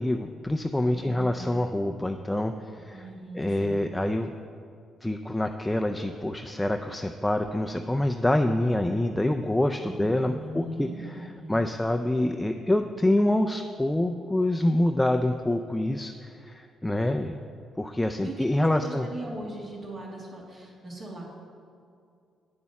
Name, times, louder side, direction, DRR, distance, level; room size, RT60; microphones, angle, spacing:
voice 1, 0.0-3.1 3.3-4.3 5.0-17.4 17.8-19.1, left 1 dB, 10° left, 5 dB, 0.4 m, -26 dB
voice 2, 0.9-1.5 2.9-3.8 9.8-11.6 18.2-21.2, right 1 dB, 40° right, -3 dB, 1.9 m, -39 dB
8.5 x 6.9 x 5.8 m, 2.4 s
cardioid pair, 90°, 0 cm